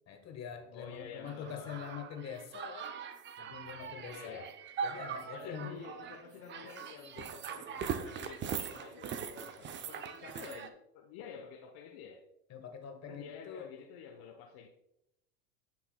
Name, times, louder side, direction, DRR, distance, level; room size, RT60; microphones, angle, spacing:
voice 1, 0.1-2.9 3.4-4.5 4.8-5.8 12.5-13.7, left 7 dB, 35° left, 1.4 m, -44 dB
voice 2, 0.7-1.9 4.1-4.5 5.3-12.2 13.1-14.7, left 6 dB, 50° left, 1.0 m, -49 dB
sound 1, 1.3-10.7, right 7 dB, 25° right, 0.5 m, -41 dB
10.0 x 5.9 x 2.2 m
hypercardioid pair, 100°, 47 cm